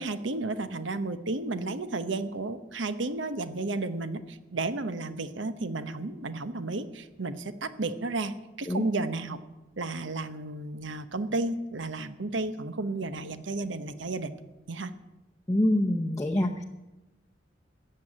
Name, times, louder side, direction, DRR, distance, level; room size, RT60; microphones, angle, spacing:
voice 1, 0.0-9.4 9.8-14.3 14.7-14.9, right 2 dB, 70° right, 12 dB, 0.9 m, -32 dB
voice 2, 15.5-16.7, left 1 dB, 15° left, 1 dB, 0.8 m, -25 dB
14.5 x 7.6 x 8.8 m, 1.0 s
head